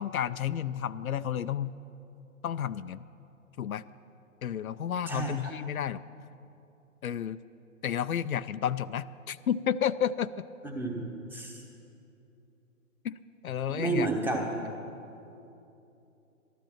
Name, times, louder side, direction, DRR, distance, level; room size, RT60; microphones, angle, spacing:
voice 1, 0.0-1.8 2.4-3.0 3.6-3.8 4.4-6.0 7.0-7.4 7.8-10.4 13.0-13.1 13.4-14.1, left 9 dB, 80° left, 14 dB, 0.5 m, -31 dB
voice 2, 10.6-11.5 13.7-14.4, right 3 dB, 5° right, 1 dB, 1.0 m, -31 dB
13.5 x 12.5 x 5.8 m, 2.8 s
figure-of-eight pair, 130°, 42 cm